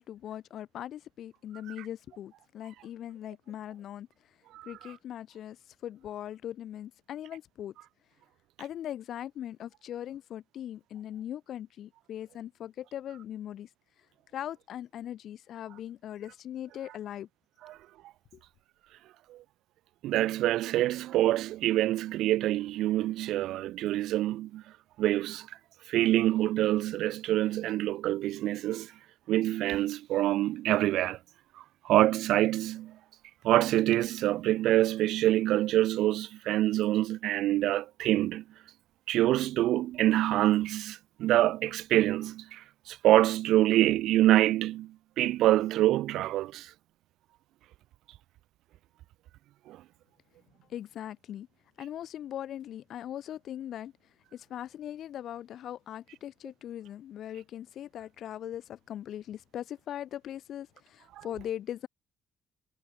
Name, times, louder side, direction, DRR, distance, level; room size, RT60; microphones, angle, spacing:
voice 1, 0.0-4.4 4.6-7.7 8.6-13.7 14.3-17.3 18.3-18.4 50.7-51.5 51.8-53.9 54.3-61.9, left 11 dB, 70° left, 1.5 m, -40 dB
voice 2, 20.0-24.6 25.0-25.5 25.9-28.9 29.3-31.2 31.8-32.9 33.4-38.4 39.1-46.7 49.7-49.8 61.2-61.3, right 15 dB, 85° right, 0.4 m, -26 dB
cardioid pair, 80°, 0 cm